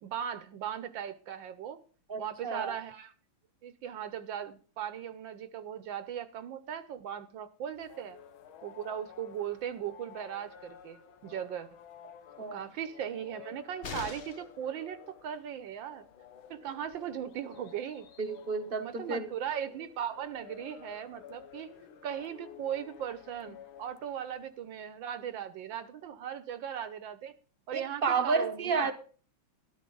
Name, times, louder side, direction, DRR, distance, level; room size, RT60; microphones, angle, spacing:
voice 1, 0.0-1.8 2.2-3.1 3.6-8.2 8.6-11.7 12.5-16.0 16.5-18.1 18.8-21.7 22.0-27.3 27.7-28.9, right 9 dB, 75° right, 12 dB, 1.4 m, -38 dB
voice 2, 2.1-2.8 12.4-12.7 18.2-19.3 27.7-28.9, right 4 dB, 35° right, 8 dB, 0.9 m, -31 dB
sound 1, 7.7-24.8, left 8 dB, 85° left, 1.8 m, -53 dB
sound 2, 13.8-14.6 16.5-16.6 16.9-17.0, left 5 dB, 50° left, 0.7 m, -41 dB
12.5 x 12.5 x 3.8 m, 0.40 s
omnidirectional pair, 2.2 m